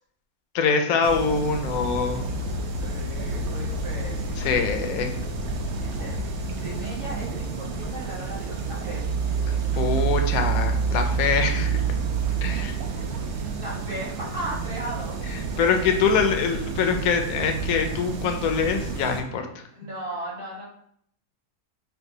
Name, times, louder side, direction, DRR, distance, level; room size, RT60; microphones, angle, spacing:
voice 1, 0.5-2.2 4.4-5.1 9.5-11.8 12.4-12.7 15.3-19.6, left 5 dB, 70° left, 4 dB, 1.0 m, -24 dB
sound 1, 1.0-19.2, right 4 dB, 70° right, 0.7 m, -29 dB
voice 2, 2.8-4.6 5.7-6.1 6.6-9.0 12.5-12.7 13.3-15.2 19.7-20.7, right 1 dB, 50° right, -7 dB, 1.8 m, -36 dB
5.8 x 2.2 x 2.6 m, 0.68 s
omnidirectional pair, 1.7 m